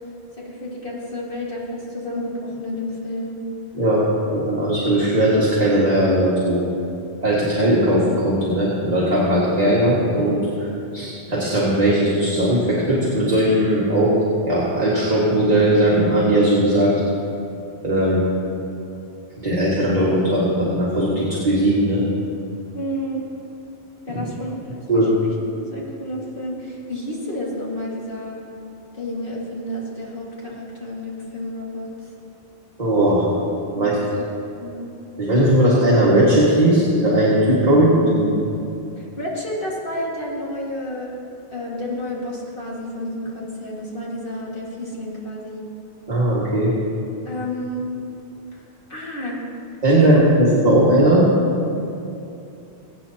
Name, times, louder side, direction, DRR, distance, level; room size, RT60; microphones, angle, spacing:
voice 1, 0.4-3.4 22.7-23.3 24.1-25.1 25.6-28.4 28.9-32.1 33.7-34.0 34.6-34.9 39.0-41.1 41.5-45.6 47.3-47.9 48.5-48.6 48.9-49.4 50.0-50.2, left 1 dB, 50° left, -5 dB, 2.3 m, -30 dB
voice 2, 4.3-6.6 7.2-10.7 10.9-14.2 14.4-16.9 17.8-18.2 19.4-22.0 24.9-25.1 32.8-33.2 33.7-34.0 35.2-38.3 46.1-46.7 49.8-51.2, right 1 dB, 35° right, -8 dB, 2.0 m, -18 dB
22.5 x 8.9 x 2.9 m, 2.6 s
omnidirectional pair, 1.1 m